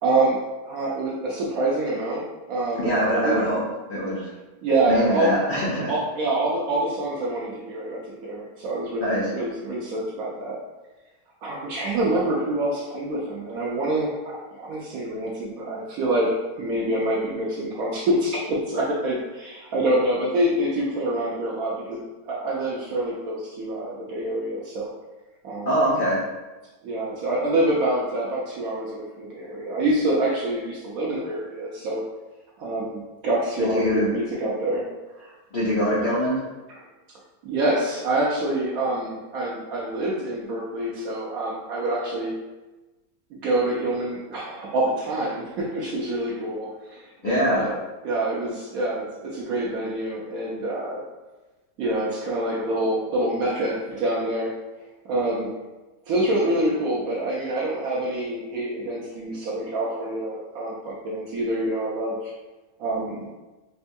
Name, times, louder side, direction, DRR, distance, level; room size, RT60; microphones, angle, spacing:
voice 1, 0.0-3.4 4.6-5.4 5.9-10.6 11.4-24.9 25.4-25.7 26.8-32.0 32.6-34.9 35.2-35.3 36.7-36.8 37.4-42.3 43.3-47.8 48.0-51.0 51.8-54.5 55.0-55.5 56.1-62.3 62.8-63.3, right 1 dB, 70° right, -4 dB, 0.9 m, -26 dB
voice 2, 2.8-3.6 3.9-4.3 4.8-5.9 9.0-9.3 25.6-26.2 33.6-34.1 35.5-36.5 47.2-47.6, equal, 90° left, -7 dB, 0.4 m, -23 dB
4.2 x 2.2 x 2.6 m, 1.1 s
omnidirectional pair, 1.8 m